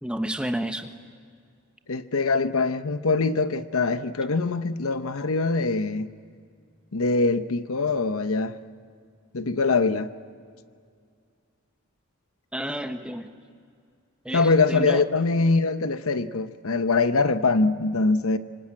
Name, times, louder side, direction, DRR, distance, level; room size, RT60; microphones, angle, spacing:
voice 1, 0.0-0.9 12.5-13.3 14.2-15.1, right 1 dB, 5° right, 1.1 m, -30 dB
voice 2, 1.9-6.1 6.9-8.6 9.3-10.1 14.3-18.4, left 3 dB, 75° left, 0.9 m, -23 dB
26.0 x 25.5 x 8.8 m
head